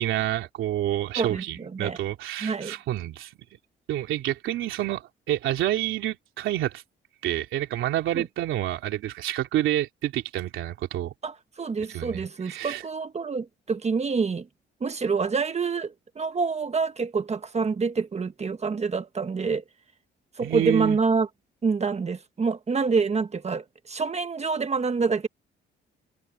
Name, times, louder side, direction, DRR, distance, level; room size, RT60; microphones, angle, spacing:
voice 1, 0.0-3.3 3.9-6.8 7.2-11.1 11.9-12.8 20.4-21.0, right 13 dB, 85° right, 3.1 m, -28 dB
voice 2, 1.2-2.0 2.4-2.7 8.1-8.2 11.2-14.4 14.8-19.6 20.4-21.3 21.6-25.3, right 4 dB, 35° right, 1.4 m, -27 dB
cardioid pair, 90°, 20 cm